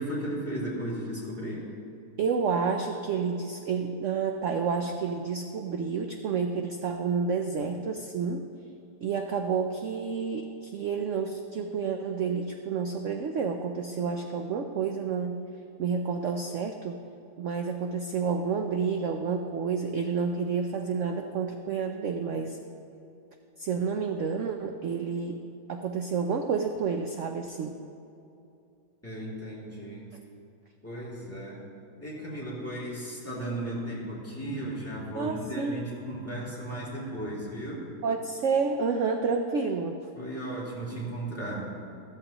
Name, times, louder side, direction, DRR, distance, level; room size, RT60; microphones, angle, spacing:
voice 1, 0.0-1.6 29.0-30.1 30.8-31.6 32.0-37.8 40.2-41.7, right 1 dB, 10° left, -7 dB, 2.6 m, -35 dB
voice 2, 2.2-8.4 9.0-15.4 15.8-17.0 17.4-22.6 23.6-25.4 25.7-27.8 35.1-35.8 38.0-40.0, right 5 dB, 65° right, 4 dB, 0.7 m, -29 dB
13.5 x 13.0 x 3.0 m, 2.6 s
omnidirectional pair, 1.8 m